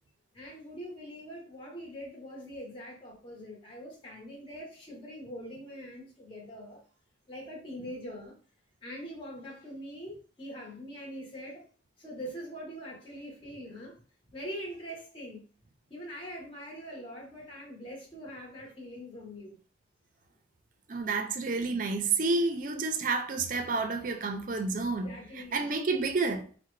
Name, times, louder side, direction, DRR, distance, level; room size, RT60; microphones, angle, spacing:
voice 1, 0.3-6.8 7.3-8.4 8.8-11.6 12.0-13.9 14.3-15.5 15.9-19.6 25.0-25.7, equal, 30° left, 0.9 m, -43 dB
voice 2, 20.9-25.1 25.4-26.5, right 3 dB, 45° right, 0.4 m, -30 dB
4.5 x 2.1 x 3.1 m
head